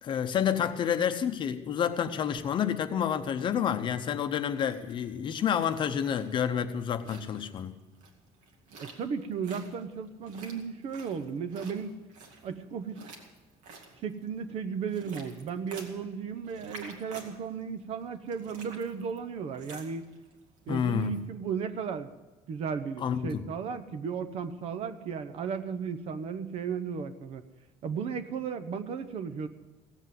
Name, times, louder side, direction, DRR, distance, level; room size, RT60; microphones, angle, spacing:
voice 1, 0.0-7.7 20.7-21.2 23.0-23.5, left 8 dB, 40° left, 9 dB, 0.8 m, -29 dB
sound 1, 4.9-21.2, right 3 dB, 75° right, 2.3 m, -51 dB
voice 2, 8.8-12.0 12.4-13.1 14.0-20.0 20.7-22.1 22.5-27.4 27.8-29.5, right 6 dB, 50° right, 10 dB, 0.9 m, -35 dB
16.5 x 8.1 x 7.8 m, 1.2 s
cardioid pair, 165°, 13 cm